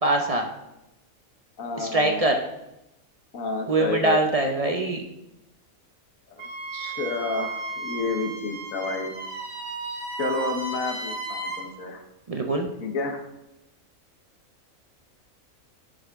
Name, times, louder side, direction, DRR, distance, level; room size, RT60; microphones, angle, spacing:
voice 1, 0.0-0.5 1.8-2.4 3.7-5.0 12.3-12.7, right 2 dB, 45° right, 3 dB, 0.4 m, -23 dB
voice 2, 1.6-2.3 3.3-4.2 6.7-9.1 10.2-12.0 12.8-13.2, left 3 dB, 70° left, 5 dB, 1.4 m, -30 dB
Wind instrument woodwind instrument, 6.4-11.7, right 3 dB, 80° right, 2.1 m, -34 dB
11.0 x 5.2 x 3.5 m, 0.91 s
omnidirectional pair, 1.5 m